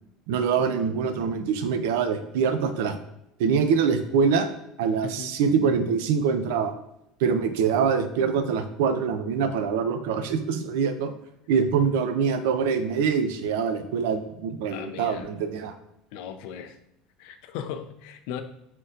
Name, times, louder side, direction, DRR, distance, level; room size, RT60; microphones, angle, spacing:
voice 1, 0.3-3.0 3.4-4.5 4.8-6.7 7.2-11.1 11.5-15.7, right 6 dB, 75° right, 9 dB, 0.4 m, -24 dB
voice 2, 5.0-5.3 14.7-15.3 16.1-16.8 17.2-18.4, left 8 dB, 60° left, 8 dB, 0.4 m, -37 dB
4.3 x 3.8 x 2.5 m, 0.83 s
cardioid pair, 175°, 0 cm